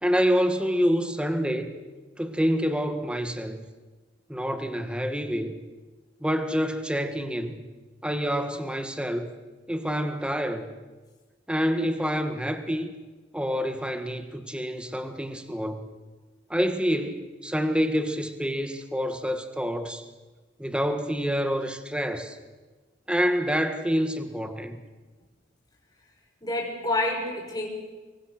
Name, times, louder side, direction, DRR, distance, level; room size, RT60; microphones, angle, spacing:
voice 1, 0.0-1.7 2.2-3.6 4.3-5.6 6.2-7.6 8.0-9.3 9.7-10.7 11.5-12.9 13.3-15.9 16.5-20.1 20.6-22.4 23.1-24.8, equal, 5° right, 8 dB, 1.7 m, -27 dB
voice 2, 26.4-27.7, left 2 dB, 20° left, -1 dB, 5.9 m, -28 dB
25.5 x 23.0 x 6.7 m, 1.2 s
head